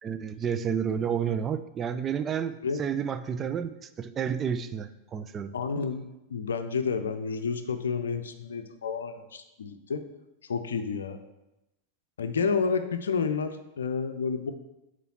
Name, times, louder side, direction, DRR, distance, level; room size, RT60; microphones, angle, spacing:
voice 1, 0.0-5.5, right 7 dB, 25° right, 11 dB, 0.4 m, -30 dB
voice 2, 5.5-10.1 10.5-11.2 12.2-14.5, left 5 dB, 65° left, 8 dB, 0.5 m, -30 dB
6.9 x 4.5 x 4.2 m, 0.95 s
figure-of-eight pair, 90°, 0 cm